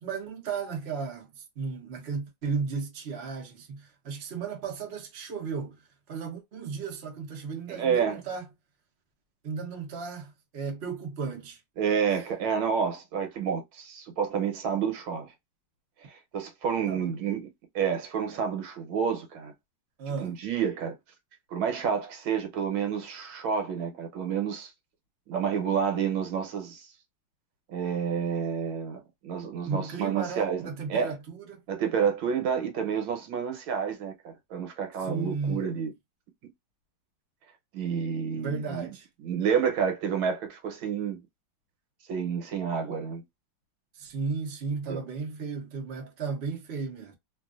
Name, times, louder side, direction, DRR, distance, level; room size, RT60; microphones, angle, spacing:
voice 1, 0.0-8.5 9.4-11.6 12.1-12.2 16.9-17.1 20.0-20.4 29.7-31.6 35.0-35.9 38.4-39.1 43.9-47.1, right 5 dB, 55° right, 0.7 m, -35 dB
voice 2, 7.7-8.2 11.8-15.3 16.1-17.5 17.7-19.5 20.2-20.9 21.5-24.7 25.3-26.9 27.7-30.6 30.9-31.1 31.7-35.9 37.7-38.9 39.2-41.2 42.1-43.2 44.9-45.0, right 7 dB, 70° right, 1.6 m, -29 dB
3.2 x 2.6 x 2.4 m
omnidirectional pair, 2.4 m